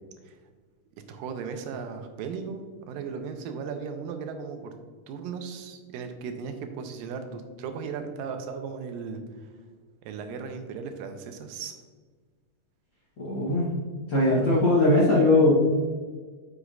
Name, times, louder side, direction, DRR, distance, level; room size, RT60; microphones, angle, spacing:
voice 1, 1.1-4.7 5.1-9.2 10.0-11.7, right 5 dB, 85° right, 6 dB, 2.4 m, -36 dB
voice 2, 13.2-13.7 14.1-15.5, left 2 dB, 60° left, -7 dB, 1.2 m, -20 dB
8.0 x 6.5 x 2.5 m, 1.5 s
omnidirectional pair, 3.9 m